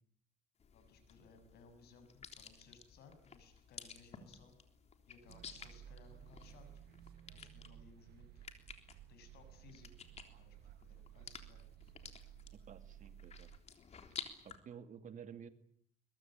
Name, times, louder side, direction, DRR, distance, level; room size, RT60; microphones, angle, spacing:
sound 1, 0.6-14.6, left 6 dB, 40° left, 3.7 m, -54 dB
voice 1, 0.7-4.6 5.1-6.7 7.3-8.5 9.1-11.6, left 5 dB, 70° left, 9 dB, 6.9 m, -62 dB
sound 2, 5.3-13.6, right 11 dB, 70° right, 1.6 m, -56 dB
voice 2, 12.5-13.5 14.4-15.5, right 7 dB, 50° right, 10 dB, 2.4 m, -52 dB
22.0 x 22.0 x 9.0 m, 0.63 s
cardioid pair, 110°, 17 cm